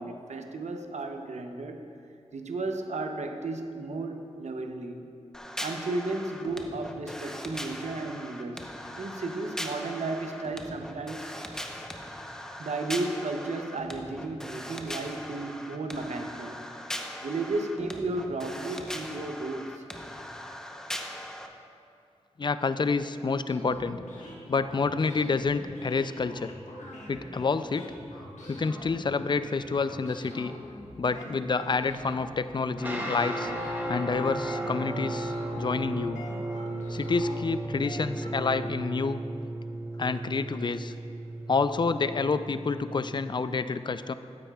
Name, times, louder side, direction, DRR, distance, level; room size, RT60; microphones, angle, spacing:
voice 1, 0.0-1.8 2.3-5.0 5.6-8.7 9.0-11.3 12.6-16.6 17.2-19.8, right 2 dB, 75° right, 5 dB, 0.7 m, -34 dB
sound 1, 5.3-21.5, equal, 5° left, 0.8 m, -40 dB
voice 2, 22.4-24.0 24.5-26.5 27.1-27.9 28.5-30.5 31.0-33.5 33.9-36.2 36.9-39.2 40.0-40.9 41.5-44.1, left 4 dB, 40° left, 12 dB, 0.4 m, -28 dB
sound 2, 23.5-38.3, left 1 dB, 80° left, 1.4 m, -44 dB
sound 3, 32.8-43.3, right 1 dB, 15° right, 1.3 m, -35 dB
13.0 x 8.9 x 2.3 m, 2.5 s
cardioid pair, 50°, 12 cm